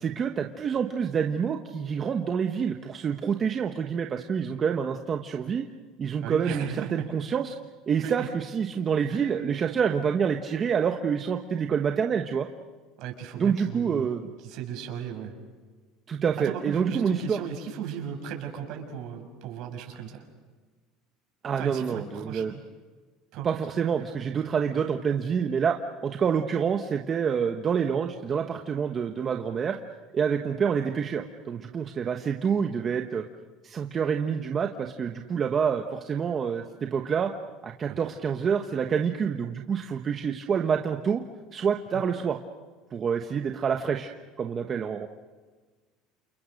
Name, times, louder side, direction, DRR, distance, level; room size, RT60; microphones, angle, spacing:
voice 1, 0.0-5.7 6.0-7.6 7.9-12.5 13.4-14.3 16.1-17.4 21.4-22.5 23.4-29.8 30.1-33.2 33.6-37.3 37.6-41.2 41.5-42.4 42.9-44.1 44.4-45.1, right 7 dB, 30° right, 4 dB, 1.3 m, -27 dB
voice 2, 6.2-7.1 8.0-8.3 9.1-9.3 13.0-14.1 14.4-15.3 16.4-20.2 21.6-22.6 23.3-23.5 37.9-38.0 41.9-42.0, right 8 dB, 60° right, 4 dB, 6.3 m, -36 dB
29.5 x 29.0 x 6.7 m, 1.4 s
cardioid pair, 140°, 0 cm